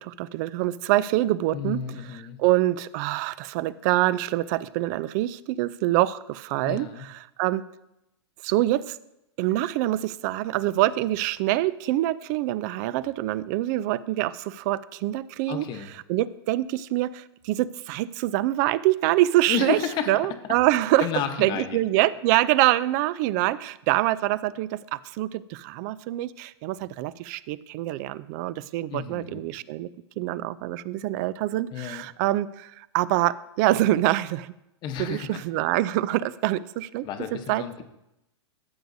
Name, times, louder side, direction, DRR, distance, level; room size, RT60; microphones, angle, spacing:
voice 1, 0.0-1.8 2.4-7.1 7.4-7.6 8.4-9.0 9.4-15.7 16.1-19.8 20.1-21.1 21.4-29.9 30.2-34.5 35.0-37.1 37.5-37.6, right 15 dB, 40° right, 18 dB, 0.4 m, -25 dB
voice 2, 1.5-2.4 6.6-7.0 15.5-15.9 19.5-20.3 21.0-21.8 28.9-29.4 31.7-32.1 34.8-35.4 37.0-37.8, left 8 dB, 30° left, 6 dB, 0.9 m, -31 dB
14.0 x 7.9 x 2.7 m, 0.88 s
hypercardioid pair, 135°, 15 cm